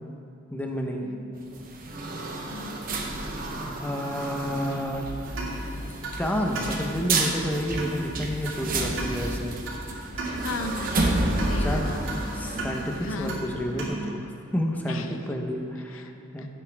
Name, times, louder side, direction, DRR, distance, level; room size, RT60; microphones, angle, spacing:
voice 1, 0.5-1.1 3.8-5.0 6.2-9.5 11.6-11.9 12.3-16.5, equal, 10° left, 1 dB, 1.0 m, -30 dB
sound 1, 1.4-13.3, right 2 dB, 45° right, 1.1 m, -31 dB
sound 2, 4.9-13.9, right 1 dB, 75° right, 2.5 m, -36 dB
voice 2, 10.4-12.0 13.0-13.4 14.9-15.2 15.9-16.1 16.4-16.5, left 3 dB, 85° left, 8 dB, 0.6 m, -36 dB
16.0 x 8.3 x 3.6 m, 2.8 s
head